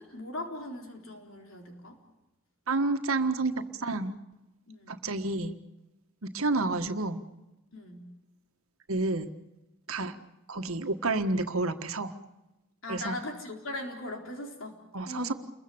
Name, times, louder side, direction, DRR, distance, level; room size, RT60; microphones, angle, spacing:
voice 1, 0.0-2.0 4.7-4.9 7.7-8.1 12.8-14.8 15.1-15.3, left 1 dB, 65° left, 2 dB, 4.0 m, -39 dB
voice 2, 2.7-4.1 4.9-5.5 6.2-7.2 8.9-9.3 9.9-10.1 10.5-12.1 12.9-13.2 14.9-15.3, right 2 dB, 90° right, 7 dB, 1.6 m, -29 dB
29.5 x 22.5 x 7.1 m, 1.0 s
head